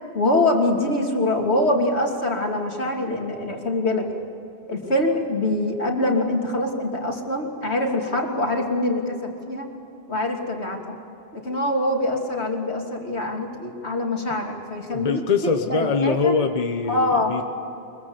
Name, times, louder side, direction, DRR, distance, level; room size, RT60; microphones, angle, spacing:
voice 1, 0.1-4.1 4.7-9.7 10.1-11.0 11.3-16.3 16.9-17.3, left 1 dB, 80° left, 1 dB, 3.2 m, -24 dB
voice 2, 14.9-17.5, left 4 dB, 35° left, 5 dB, 1.2 m, -23 dB
24.5 x 22.5 x 8.1 m, 2.8 s
omnidirectional pair, 1.1 m